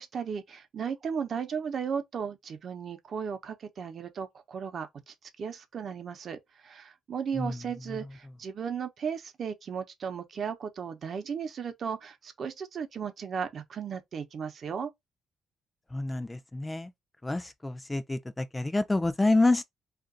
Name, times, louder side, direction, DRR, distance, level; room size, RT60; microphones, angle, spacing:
voice 1, 0.0-14.9, right 6 dB, 55° right, 0.7 m, -35 dB
voice 2, 15.9-16.9 17.2-19.6, left 2 dB, 15° left, 0.4 m, -27 dB
2.5 x 2.3 x 3.7 m
cardioid pair, 90°, 0 cm